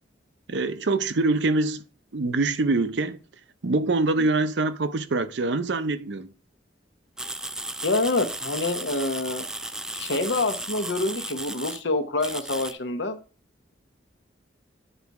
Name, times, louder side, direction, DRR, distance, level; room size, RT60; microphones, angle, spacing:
voice 1, 0.5-1.8 2.1-3.2 3.6-6.3, right 3 dB, 70° right, 0.6 m, -24 dB
sound 1, 7.2-11.8 12.2-12.7, right 1 dB, 5° right, 0.3 m, -35 dB
voice 2, 7.8-9.5 9.9-13.2, left 2 dB, 75° left, 1.0 m, -26 dB
8.9 x 4.1 x 4.7 m
head